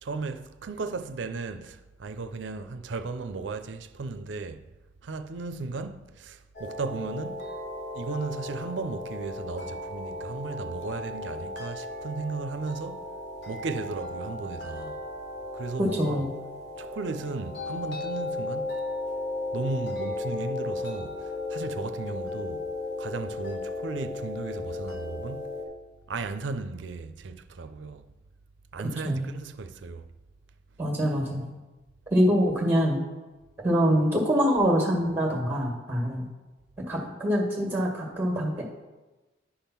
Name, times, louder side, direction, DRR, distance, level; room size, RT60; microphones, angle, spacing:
voice 1, 0.0-4.7 5.0-7.6 7.9-13.1 13.5-15.0 15.5-16.3 16.8-18.8 19.5-22.7 23.0-25.6 26.1-28.1 28.7-30.0, right 3 dB, 80° right, 0.5 m, -35 dB
sound 1, 6.6-25.7, left 2 dB, 60° left, 1.5 m, -35 dB
voice 2, 15.8-16.3 29.0-29.3 30.8-31.5 32.1-33.0 33.6-36.3 36.9-38.6, equal, 10° right, 1.6 m, -24 dB
10.0 x 3.6 x 5.8 m
head